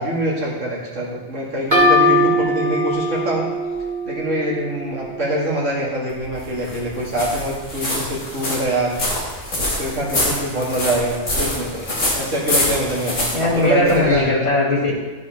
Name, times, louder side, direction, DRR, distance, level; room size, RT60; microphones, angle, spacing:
voice 1, 0.0-3.5 4.1-9.0 9.6-14.3, right 1 dB, 85° right, -5 dB, 2.5 m, -24 dB
sound 1, 1.7-5.3, equal, 35° right, 2.6 m, -20 dB
sound 2, 6.1-14.3, left 1 dB, 80° left, 2.4 m, -25 dB
voice 2, 13.3-14.9, left 2 dB, 50° left, -8 dB, 2.7 m, -18 dB
15.0 x 5.3 x 3.5 m, 1.3 s
omnidirectional pair, 1.2 m